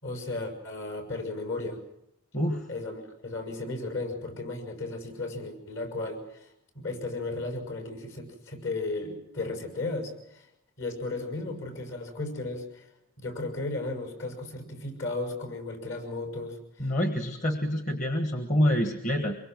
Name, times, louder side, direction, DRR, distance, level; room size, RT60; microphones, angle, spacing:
voice 1, 0.0-1.8 2.7-6.5 6.7-10.5 10.8-12.9 13.2-16.9, left 2 dB, 65° left, 6 dB, 6.5 m, -35 dB
voice 2, 2.3-2.7 16.8-19.4, equal, 35° left, 5 dB, 1.5 m, -26 dB
25.0 x 23.0 x 6.2 m, 0.81 s
head